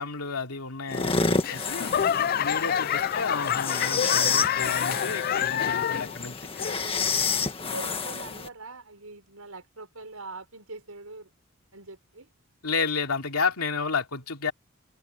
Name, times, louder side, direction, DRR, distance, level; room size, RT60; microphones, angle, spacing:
voice 1, 0.0-1.9 2.4-6.5 12.6-14.5, left 4 dB, 90° left, 2.9 m, -31 dB
sound 1, 0.9-8.5, left 4 dB, 25° left, 1.7 m, -29 dB
voice 2, 1.3-2.0 2.7-3.1 6.8-7.2 7.6-11.3 11.7-12.3, right 3 dB, 80° right, 5.7 m, -43 dB
Laughter / Clapping / Crowd, 1.4-6.2 6.5-7.1 7.6-7.7, left 9 dB, 45° left, 0.3 m, -27 dB
open air
head